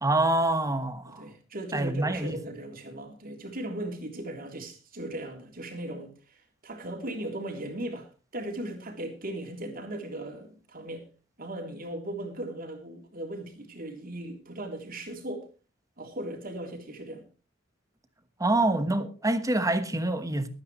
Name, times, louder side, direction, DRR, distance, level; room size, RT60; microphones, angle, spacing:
voice 1, 0.0-1.2 1.7-2.4 18.4-20.5, right 2 dB, 15° right, 1.3 m, -26 dB
voice 2, 1.0-11.1 11.4-15.5 16.0-17.3, right 1 dB, 50° right, 3.2 m, -38 dB
23.0 x 9.5 x 3.1 m
head